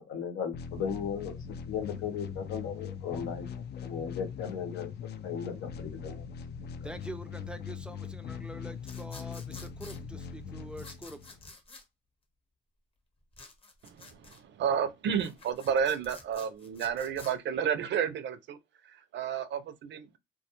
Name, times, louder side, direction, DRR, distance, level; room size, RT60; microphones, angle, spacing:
voice 1, 0.0-4.9 5.2-6.2 6.8-6.9, left 7 dB, 85° left, 0.8 m, -36 dB
sound 1, 0.5-11.5, left 7 dB, 55° left, 0.4 m, -41 dB
voice 2, 6.8-11.4, right 1 dB, 5° right, 0.4 m, -45 dB
sound 2, 8.8-10.0 10.8-11.8 13.3-14.4 15.0-17.3, left 3 dB, 30° left, 0.8 m, -50 dB
voice 3, 13.8-18.6 18.9-20.2, right 7 dB, 65° right, 0.5 m, -31 dB
2.3 x 2.2 x 2.8 m
cardioid pair, 90°, 20 cm